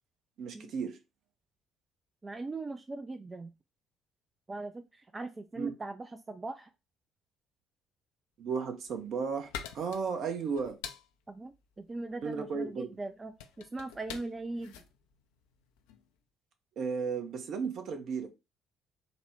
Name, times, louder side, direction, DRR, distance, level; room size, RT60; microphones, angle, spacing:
voice 1, 0.4-1.0 5.6-5.7 8.4-9.5 9.7-10.8 12.2-12.9 16.8-18.3, right 5 dB, 50° right, 0.7 m, -34 dB
voice 2, 2.2-3.5 4.5-6.7 11.3-14.8, right 2 dB, 25° right, 0.3 m, -40 dB
sound 1, 8.6-16.1, left 8 dB, 65° left, 0.4 m, -47 dB
4.1 x 2.2 x 3.3 m
figure-of-eight pair, 50°, 0 cm